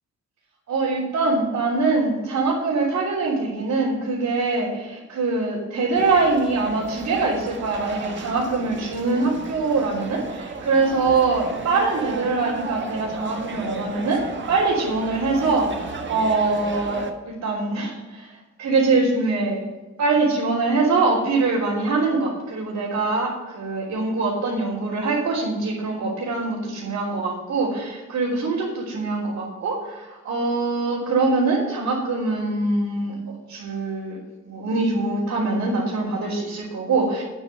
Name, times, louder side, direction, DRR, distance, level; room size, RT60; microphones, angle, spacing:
voice 1, 0.7-14.2 14.5-18.3 18.6-19.6 20.0-34.2 34.4-37.2, right 3 dB, 65° right, -6 dB, 3.5 m, -23 dB
sound 1, 5.9-17.1, right 4 dB, 40° right, 1.6 m, -34 dB
9.0 x 8.1 x 6.7 m, 1.1 s
cardioid pair, 90°, 30 cm